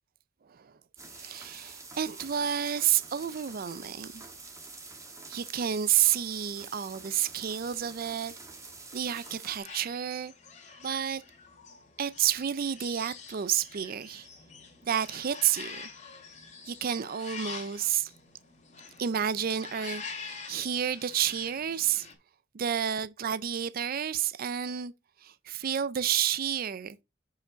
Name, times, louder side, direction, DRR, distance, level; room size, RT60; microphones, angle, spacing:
sound 1, 1.0-9.6, right 3 dB, 15° right, 1.8 m, -47 dB
voice 1, 1.2-4.3 5.3-8.3 8.9-10.3 10.8-11.2 12.0-14.3 14.8-15.8 16.7-18.1 19.0-22.1 22.5-24.9 25.2-27.0, right 9 dB, 50° right, 0.4 m, -30 dB
sound 2, 7.6-22.1, left 5 dB, 40° left, 2.3 m, -46 dB
7.3 x 5.8 x 3.9 m
head